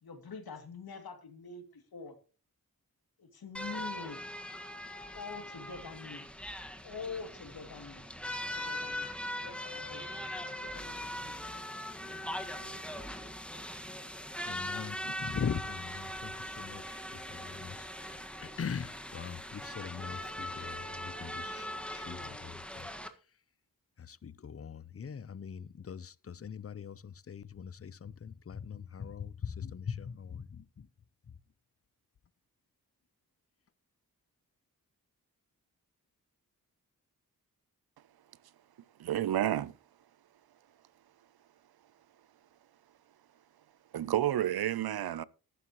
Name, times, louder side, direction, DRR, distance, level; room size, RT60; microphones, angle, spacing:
voice 1, 0.0-2.2 3.2-4.2 5.1-6.3 6.8-8.1 8.3-9.1 9.4-10.1 10.4-11.3 12.4-12.9, left 5 dB, 80° left, 2.7 m, -45 dB
sound 1, 3.5-23.1, left 1 dB, 5° left, 1.6 m, -41 dB
voice 2, 14.4-22.9 24.0-30.9, left 7 dB, 40° left, 0.6 m, -41 dB
voice 3, 39.0-39.7 43.9-45.2, right 11 dB, 85° right, 0.6 m, -30 dB
14.5 x 11.5 x 3.1 m
cardioid pair, 70°, 36 cm